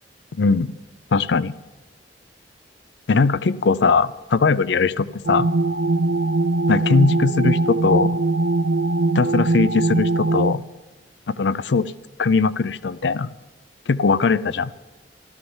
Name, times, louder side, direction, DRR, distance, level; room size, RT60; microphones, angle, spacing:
voice 1, 0.3-0.7 1.1-1.5 3.1-5.5 6.7-8.2 9.1-10.6 11.3-11.9 12.2-13.3 13.9-14.7, left 4 dB, 75° left, 16 dB, 0.5 m, -20 dB
sound 1, 5.2-10.5, right 2 dB, 60° right, 0.6 m, -21 dB
13.0 x 12.5 x 7.2 m, 1.2 s
head